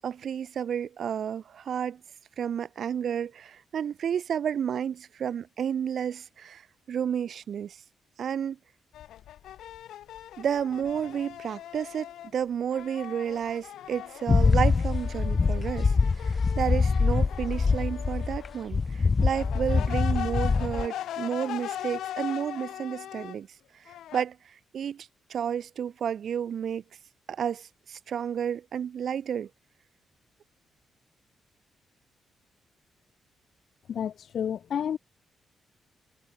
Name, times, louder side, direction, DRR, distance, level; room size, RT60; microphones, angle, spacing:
voice 1, 0.0-2.0 2.4-7.8 8.2-8.6 10.4-23.5 23.7-26.8 27.3-29.5, right 8 dB, 55° right, 3.4 m, -31 dB
sound 1, 8.9-12.4 12.7-18.7 19.2-23.4 23.9-24.2, left 12 dB, 85° left, 1.7 m, -40 dB
sound 2, 14.3-18.5 18.7-20.9, left 4 dB, 30° left, 1.1 m, -24 dB
voice 2, 33.9-35.0, left 8 dB, 60° left, 1.4 m, -30 dB
cardioid pair, 130°, 0 cm